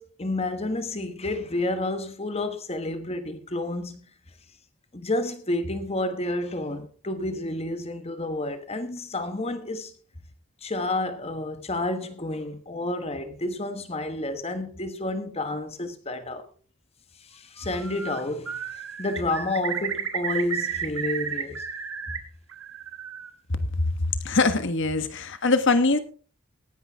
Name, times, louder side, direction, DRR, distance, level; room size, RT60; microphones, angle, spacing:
voice 1, 0.0-4.1 4.9-9.9 10.6-16.4 17.2-21.7, left 2 dB, 25° left, 1.1 m, -30 dB
Bird, 17.6-18.2 18.5-22.2 22.5-23.3, right 8 dB, 65° right, 1.9 m, -32 dB
voice 2, 24.2-26.0, left 3 dB, 55° left, 1.4 m, -22 dB
18.0 x 10.5 x 3.5 m
head